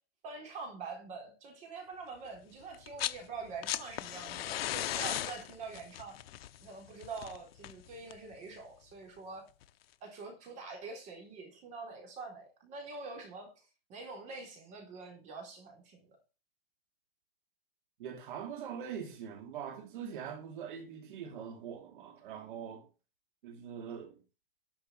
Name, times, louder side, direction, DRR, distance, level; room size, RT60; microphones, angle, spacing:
voice 1, 0.2-6.2 6.6-9.4 10.0-13.5 13.9-16.2, right 4 dB, 25° right, 4.0 m, -45 dB
sound 1, 2.7-3.2 3.5-8.3 9.6-9.7, left 13 dB, 90° left, 0.8 m, -37 dB
voice 2, 18.0-22.9 23.4-24.1, right 8 dB, 60° right, 2.8 m, -43 dB
11.5 x 6.7 x 6.4 m
supercardioid pair, 170°, 29 cm